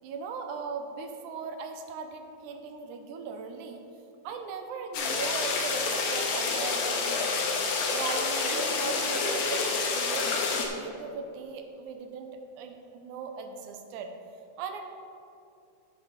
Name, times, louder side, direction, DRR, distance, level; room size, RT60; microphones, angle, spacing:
voice 1, 0.0-3.8 4.2-7.5 7.9-12.3 12.6-14.1 14.6-14.9, right 5 dB, 80° right, 6 dB, 2.1 m, -38 dB
sound 1, 4.9-10.7, left 4 dB, 70° left, 2.2 m, -28 dB
7.8 x 7.3 x 5.3 m, 2.6 s
omnidirectional pair, 3.6 m